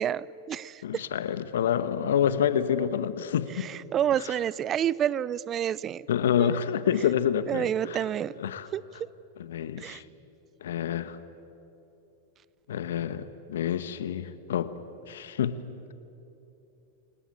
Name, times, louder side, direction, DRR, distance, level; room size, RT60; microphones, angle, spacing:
voice 1, 0.0-0.8 3.6-6.0 6.4-6.6 7.5-8.3 8.7-8.8 9.8-10.0, right 10 dB, 30° right, 0.6 m, -29 dB
voice 2, 0.8-3.7 4.2-4.3 6.1-8.0 8.4-8.7 9.4-10.0 10.6-11.2 12.7-14.7 15.1-15.6, left 9 dB, 80° left, 1.3 m, -28 dB
29.0 x 19.0 x 8.6 m
hypercardioid pair, 110°, 0 cm